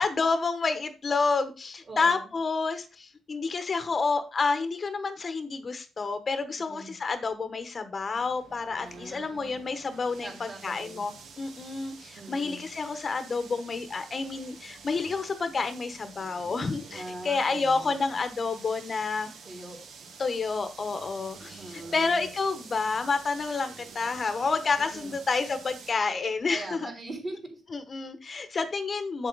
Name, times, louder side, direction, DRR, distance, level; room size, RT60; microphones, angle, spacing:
voice 1, 0.0-11.1 11.4-19.3 20.2-26.9 27.7-29.3, left 4 dB, 35° left, 10 dB, 1.0 m, -29 dB
voice 2, 1.9-2.3 6.6-7.0 8.7-9.6 10.2-11.0 12.2-12.7 16.9-18.2 19.4-19.8 21.6-22.3 24.8-25.1 26.5-27.6 28.3-28.5, right 2 dB, 40° right, 2 dB, 3.9 m, -42 dB
sound 1, 8.1-25.9, right 5 dB, 80° right, 1.4 m, -48 dB
8.1 x 7.7 x 4.0 m, 0.32 s
cardioid pair, 115°, 0 cm